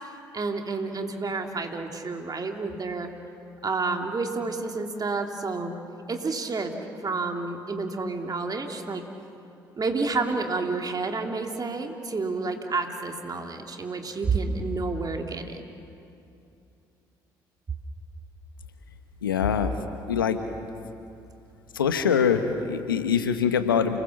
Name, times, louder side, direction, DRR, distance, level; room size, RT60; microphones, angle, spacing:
voice 1, 0.3-3.1 3.6-5.7 6.1-6.7 7.0-9.0 9.8-15.6, right 3 dB, 35° right, 3 dB, 3.2 m, -29 dB
voice 2, 19.2-19.7 20.1-20.4 21.7-24.0, left 7 dB, 90° left, 8 dB, 1.2 m, -23 dB
29.5 x 20.5 x 7.3 m, 2.6 s
hypercardioid pair, 50°, 11 cm